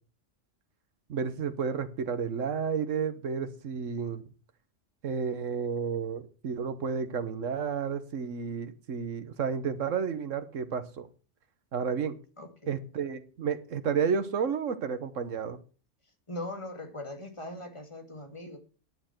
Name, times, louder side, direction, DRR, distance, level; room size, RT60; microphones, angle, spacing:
voice 1, 1.1-4.2 5.0-11.1 11.7-12.1 12.7-15.6, right 6 dB, 85° right, 11 dB, 1.5 m, -31 dB
voice 2, 12.4-12.8 16.3-18.6, left 1 dB, 25° left, 5 dB, 2.3 m, -40 dB
10.5 x 8.9 x 6.0 m, 0.37 s
omnidirectional pair, 1.3 m